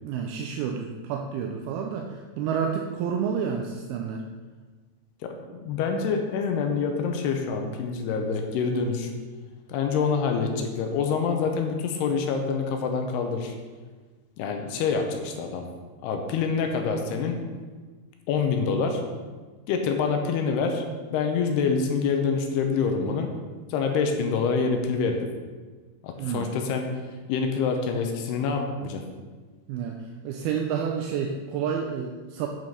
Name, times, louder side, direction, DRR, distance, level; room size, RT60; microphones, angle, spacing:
voice 1, 0.0-4.2 26.2-26.5 29.7-32.5, right 7 dB, 80° right, 3 dB, 2.3 m, -30 dB
voice 2, 5.7-9.1 9.7-13.6 14.4-15.7 16.0-17.4 18.3-19.0 19.7-23.3 23.7-25.3 26.0-26.9 27.3-29.0, left 5 dB, 80° left, 4 dB, 2.8 m, -26 dB
8.9 x 6.2 x 5.5 m, 1.4 s
omnidirectional pair, 4.8 m